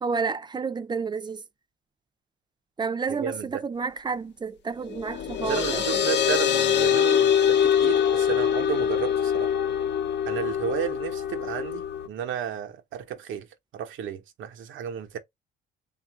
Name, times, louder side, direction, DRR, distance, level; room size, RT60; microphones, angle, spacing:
voice 1, 0.0-1.4 2.8-6.0, right 5 dB, 20° right, 0.5 m, -30 dB
voice 2, 3.1-3.6 5.4-9.6 10.3-13.5 13.7-15.2, right 8 dB, 80° right, 0.9 m, -32 dB
sound 1, 4.9-12.1, left 9 dB, 60° left, 0.7 m, -24 dB
3.6 x 2.5 x 4.6 m
cardioid pair, 90°, 20 cm